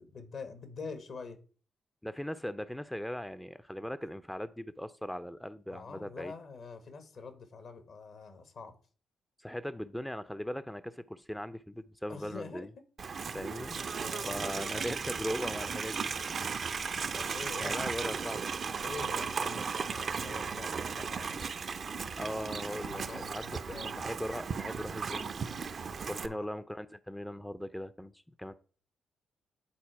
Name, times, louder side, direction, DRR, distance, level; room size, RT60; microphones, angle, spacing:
voice 1, 0.0-1.4 5.7-8.8 12.1-12.7 13.2-13.5 14.0-14.9 17.1-18.2 18.8-21.5 22.8-24.0 26.1-26.5, left 4 dB, 60° left, 9 dB, 1.5 m, -46 dB
voice 2, 2.0-6.3 9.4-12.7 13.3-16.1 17.6-18.4 22.2-25.3 26.1-28.1 28.4-28.5, equal, 5° left, 12 dB, 0.6 m, -39 dB
Livestock farm animals working animals, 13.0-26.3, right 5 dB, 50° right, 0.7 m, -36 dB
9.6 x 4.1 x 4.6 m, 0.40 s
hypercardioid pair, 40°, 0 cm